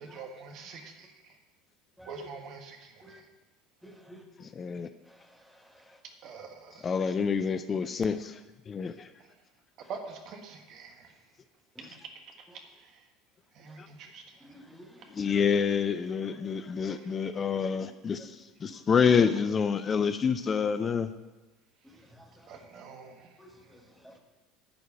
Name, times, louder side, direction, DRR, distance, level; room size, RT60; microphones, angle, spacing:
voice 1, 0.1-0.8 2.1-2.8 6.2-6.5 9.9-10.9 13.6-14.2 22.5-23.1, right 5 dB, 50° right, 4 dB, 1.5 m, -43 dB
voice 2, 2.0-2.3 3.0-3.2 3.8-4.2 5.1-6.0 11.8-12.0 12.5-12.6 13.7-13.8 14.4-15.3 16.9-17.0 18.2-18.3 18.7-18.8 21.9-22.6 23.4-24.2, equal, ahead, 2 dB, 1.7 m, -53 dB
voice 3, 4.4-4.9 6.8-8.4 8.7-9.1 11.9-12.0 13.8-13.9 15.1-21.1, left 6 dB, 30° left, 11 dB, 0.4 m, -27 dB
10.5 x 4.7 x 7.8 m, 1.1 s
hypercardioid pair, 70°, 0 cm